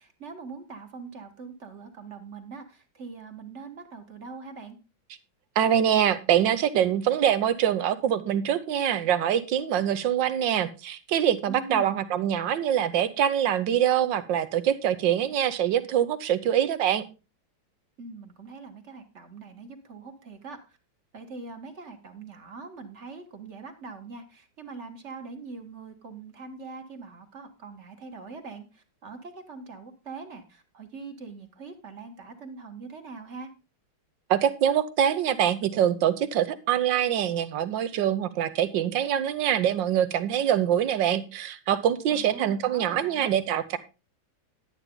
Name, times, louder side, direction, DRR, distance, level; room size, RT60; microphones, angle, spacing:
voice 1, 0.0-4.8 11.5-12.0 18.0-20.8 21.1-33.5 42.1-43.3, right 4 dB, 40° right, 6 dB, 1.7 m, -42 dB
voice 2, 5.6-17.0 34.3-43.8, right 10 dB, 70° right, 13 dB, 1.6 m, -24 dB
11.0 x 9.4 x 3.8 m, 0.30 s
omnidirectional pair, 2.2 m